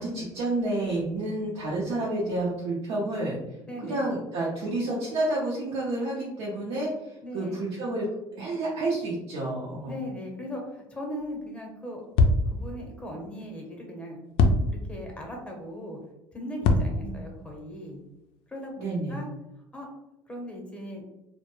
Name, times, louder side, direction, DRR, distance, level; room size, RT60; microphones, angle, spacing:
voice 1, 0.0-3.4 3.8-8.1 8.3-10.0 17.0-17.2 18.8-19.2, right 2 dB, 70° right, -5 dB, 0.6 m, -30 dB
voice 2, 3.7-4.1 7.2-7.6 9.8-12.0 12.5-14.2 14.7-16.0 16.3-18.0 18.5-19.3 19.7-19.9 20.3-21.0, equal, 10° left, 0 dB, 0.7 m, -38 dB
sound 1, 11.2-11.3 12.1-12.8 14.3-15.2 16.6-17.5, left 2 dB, 70° left, 0.4 m, -23 dB
2.1 x 2.0 x 2.9 m, 0.92 s
supercardioid pair, 95°, 10 cm